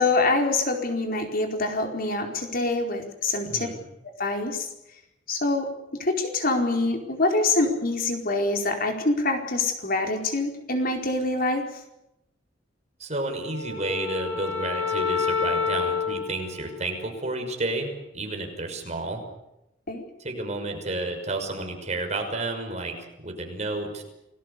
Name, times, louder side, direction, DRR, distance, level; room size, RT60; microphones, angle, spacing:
voice 1, 0.0-3.7 4.0-4.7 5.3-5.7 6.0-11.8 19.9-20.1, left 2 dB, 50° left, 3 dB, 4.5 m, -25 dB
voice 2, 3.5-3.8 13.0-19.2 20.2-24.0, right 2 dB, 40° right, 4 dB, 6.1 m, -31 dB
Wind instrument woodwind instrument, 13.2-17.7, left 6 dB, 75° left, 7.8 m, -29 dB
30.0 x 20.5 x 6.9 m, 0.87 s
head